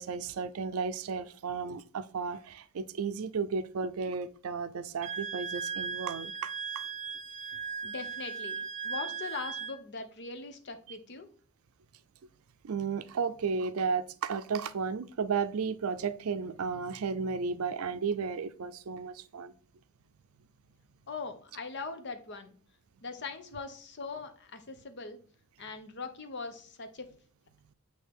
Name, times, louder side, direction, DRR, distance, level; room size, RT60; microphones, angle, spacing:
voice 1, 0.0-6.5 12.6-19.5, right 5 dB, 80° right, 0.5 m, -33 dB
Wind instrument woodwind instrument, 5.0-9.8, right 6 dB, 35° right, 0.6 m, -37 dB
voice 2, 7.8-11.3 21.1-22.6 23.0-25.2 25.6-27.1, left 4 dB, 55° left, 0.8 m, -41 dB
8.0 x 2.9 x 4.4 m
head